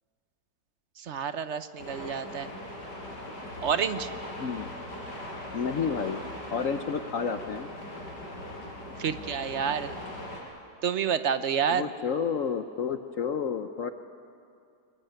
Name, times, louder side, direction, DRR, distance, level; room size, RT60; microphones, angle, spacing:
voice 1, 1.0-2.5 3.6-4.1 9.0-9.9 10.8-11.9, right 7 dB, 55° right, 12 dB, 0.9 m, -29 dB
sound 1, 1.8-10.4, left 1 dB, 80° left, 5.9 m, -40 dB
voice 2, 4.4-4.7 5.5-6.2 6.5-7.7 11.7-13.9, left 6 dB, 55° left, 8 dB, 1.1 m, -30 dB
23.5 x 22.0 x 9.1 m, 2.4 s
omnidirectional pair, 1.8 m